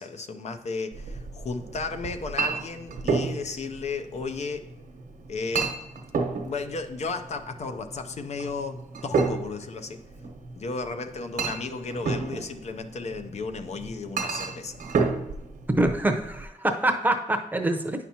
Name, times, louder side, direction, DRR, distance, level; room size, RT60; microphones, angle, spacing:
voice 1, 0.0-4.7 5.3-5.7 6.5-10.0 10.6-14.8, left 4 dB, 55° left, 7 dB, 0.5 m, -34 dB
Chink clink, 0.9-16.4, right 4 dB, 75° right, 1.0 m, -32 dB
voice 2, 15.8-18.1, right 1 dB, 15° right, 5 dB, 0.7 m, -25 dB
9.2 x 5.8 x 2.9 m, 0.94 s
cardioid pair, 105°, 14 cm